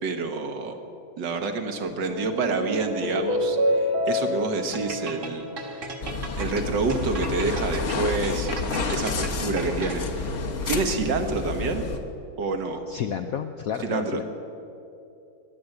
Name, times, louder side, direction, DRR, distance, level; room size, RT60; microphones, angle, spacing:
voice 1, 0.0-0.8 1.2-5.5 6.4-10.3 10.7-11.9 12.4-12.8 13.8-14.2, right 3 dB, 65° right, 5 dB, 1.9 m, -28 dB
sound 1, 1.8-6.4, left 1 dB, 80° right, 3.3 m, -28 dB
sound 2, 4.7-10.3, right 4 dB, 45° right, 1.6 m, -37 dB
sound 3, 6.0-12.0, left 3 dB, 45° left, 1.2 m, -29 dB
voice 2, 12.9-14.2, left 8 dB, 70° left, 7 dB, 0.8 m, -30 dB
21.0 x 8.6 x 7.9 m, 2.7 s
omnidirectional pair, 2.1 m